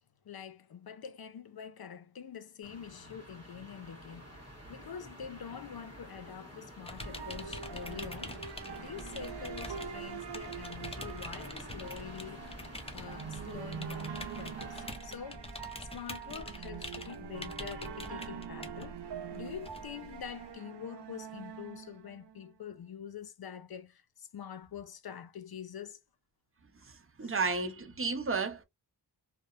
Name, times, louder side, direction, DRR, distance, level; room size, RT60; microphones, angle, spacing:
voice 1, 0.2-12.5 12.9-19.0 19.3-26.0 27.2-27.3, left 7 dB, 60° left, 0.5 m, -45 dB
sound 1, 2.6-14.9, equal, 35° left, 1.3 m, -50 dB
sound 2, 6.9-20.5, left 1 dB, 15° left, 0.7 m, -46 dB
sound 3, 7.0-22.5, right 7 dB, 70° right, 0.6 m, -44 dB
voice 2, 26.8-28.6, right 4 dB, 30° right, 0.7 m, -33 dB
2.8 x 2.1 x 2.4 m
cardioid pair, 45°, 43 cm